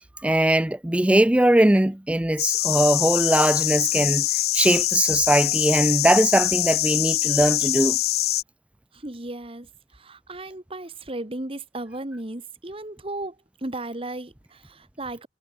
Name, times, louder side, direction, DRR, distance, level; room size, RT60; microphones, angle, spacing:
voice 1, 0.2-4.3 4.5-8.0, right 1 dB, 5° right, 0.4 m, -20 dB
sound 1, 2.4-8.4, left 16 dB, 55° left, 0.5 m, -24 dB
voice 2, 8.9-13.3 13.6-15.3, right 2 dB, 30° right, 1.6 m, -35 dB
head